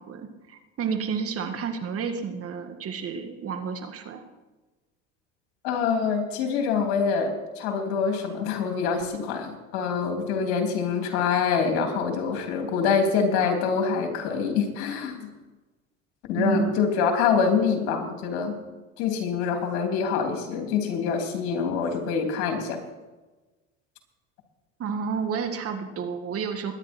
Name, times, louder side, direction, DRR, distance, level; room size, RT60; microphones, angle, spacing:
voice 1, 0.0-4.2 16.3-16.7 24.8-26.7, right 5 dB, 45° right, 6 dB, 2.0 m, -30 dB
voice 2, 5.6-15.3 16.3-18.6 19.0-22.8, left 6 dB, 85° left, 4 dB, 3.1 m, -25 dB
22.0 x 10.0 x 4.5 m, 1.2 s
supercardioid pair, 105°, 33 cm